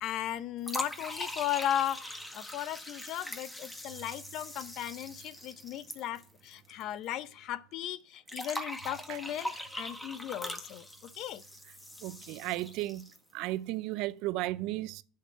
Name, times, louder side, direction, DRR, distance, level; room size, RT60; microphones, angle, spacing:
voice 1, 0.0-10.9 11.2-11.4, left 11 dB, 60° left, 0.7 m, -36 dB
sound 1, 0.6-6.8 7.1-7.2 8.3-13.3, left 1 dB, 10° left, 1.8 m, -42 dB
voice 2, 12.0-13.0 13.3-15.0, right 17 dB, 70° right, 0.6 m, -34 dB
10.0 x 6.6 x 6.7 m
supercardioid pair, 95°, 0 cm